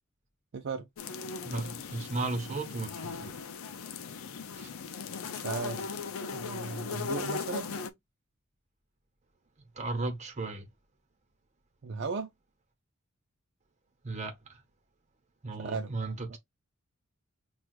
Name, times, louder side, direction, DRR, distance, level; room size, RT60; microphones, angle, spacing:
voice 1, 0.5-0.8 5.3-5.9 6.3-7.8 11.8-12.3 15.6-15.9 16.3-16.4, right 4 dB, 55° right, 0.5 m, -36 dB
sound 1, 1.0-7.9, left 5 dB, 80° left, 0.5 m, -38 dB
voice 2, 1.4-3.4 4.5-4.7 9.8-10.7 14.0-14.6 15.4-16.4, right 3 dB, 35° right, 0.9 m, -35 dB
6.0 x 2.3 x 2.4 m
head